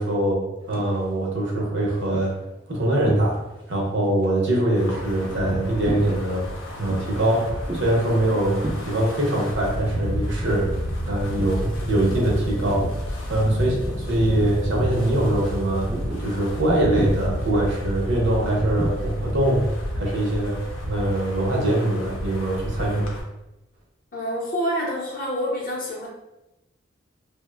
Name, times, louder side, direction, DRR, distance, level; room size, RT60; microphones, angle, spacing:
voice 1, 0.0-2.3 2.7-3.4 3.7-6.5 6.8-10.7 11.0-15.9 16.2-19.7 19.9-20.6 20.8-23.1, right 1 dB, 65° right, -2 dB, 0.7 m, -23 dB
sound 1, 0.6-1.0 1.5-3.7 4.0-12.0 12.2-13.3 13.6-13.9 14.2-14.7 15.0-19.2, right 1 dB, 25° right, 0.3 m, -35 dB
Wind, 4.8-23.2, equal, 90° left, 0.6 m, -31 dB
voice 2, 24.1-26.1, equal, 45° left, -2 dB, 0.6 m, -27 dB
2.8 x 2.0 x 2.2 m, 0.95 s
head